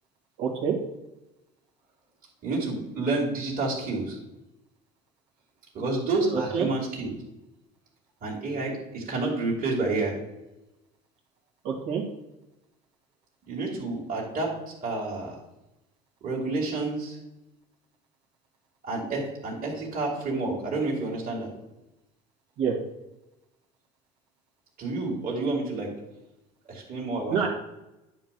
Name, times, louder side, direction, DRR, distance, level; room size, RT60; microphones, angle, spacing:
voice 1, 0.4-0.8 6.3-6.7 11.6-12.0 22.6-22.8 27.3-27.5, right 7 dB, 75° right, -1 dB, 1.9 m, -26 dB
voice 2, 2.4-4.2 5.7-7.2 8.2-10.2 13.5-14.5 14.8-15.4 16.2-17.2 18.8-21.5 24.8-25.9 26.7-27.5, right 3 dB, 45° right, -4 dB, 2.4 m, -29 dB
9.4 x 3.1 x 6.7 m, 0.95 s
supercardioid pair, 90°, 20 cm